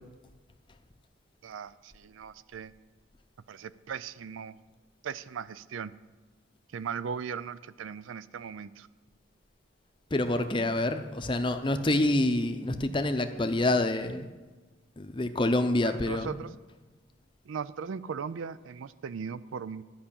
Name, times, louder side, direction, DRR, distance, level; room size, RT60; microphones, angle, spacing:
voice 1, 1.4-2.7 3.5-4.6 5.0-5.9 6.7-8.9 16.1-16.5 17.5-19.8, right 6 dB, 90° right, 17 dB, 0.4 m, -38 dB
voice 2, 10.1-14.3 15.0-16.4, left 1 dB, 25° left, 8 dB, 0.6 m, -27 dB
12.0 x 5.6 x 8.7 m, 1.3 s
head